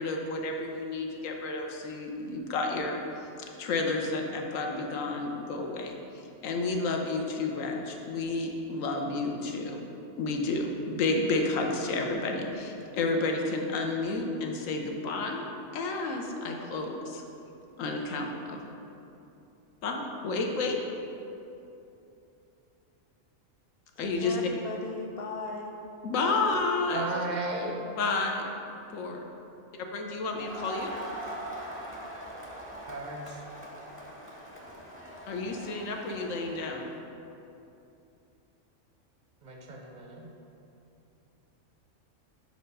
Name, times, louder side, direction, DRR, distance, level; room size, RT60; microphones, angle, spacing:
voice 1, 0.0-3.3 3.6-9.8 10.2-15.5 15.7-17.2 17.8-18.6 19.8-20.8 24.0-24.4 26.0-27.1 28.0-28.5 28.9-29.2 29.9-30.9 35.3-36.9, left 3 dB, 90° left, 2 dB, 1.1 m, -31 dB
voice 2, 24.0-25.7, left 3 dB, 65° left, 2 dB, 0.6 m, -37 dB
voice 3, 26.9-27.8 32.9-33.4 39.4-40.3, right 2 dB, 50° right, 1 dB, 0.5 m, -35 dB
Crowd, 30.3-36.9, right 1 dB, 15° left, 0.6 m, -42 dB
4.8 x 4.4 x 5.3 m, 2.8 s
omnidirectional pair, 1.3 m